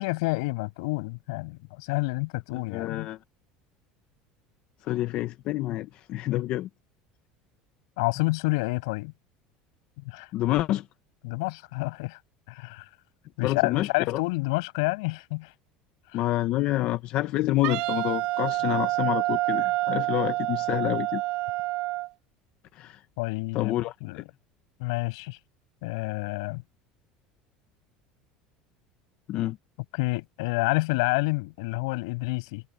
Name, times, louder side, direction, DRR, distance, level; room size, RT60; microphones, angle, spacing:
voice 1, 0.0-3.1 8.0-9.1 10.0-10.3 11.2-12.2 12.5-12.9 13.4-15.5 16.1-16.2 23.2-24.2 24.8-25.4 25.8-26.6 29.9-32.6, left 26 dB, 85° left, 7.8 m, -29 dB
voice 2, 2.7-3.2 4.8-6.7 10.3-10.8 13.4-14.2 16.1-21.2 22.7-23.0 23.5-24.2 29.3-29.6, left 16 dB, 45° left, 0.7 m, -28 dB
Wind instrument woodwind instrument, 17.6-22.1, right 20 dB, 60° right, 3.3 m, -27 dB
cardioid pair, 160°, 3 cm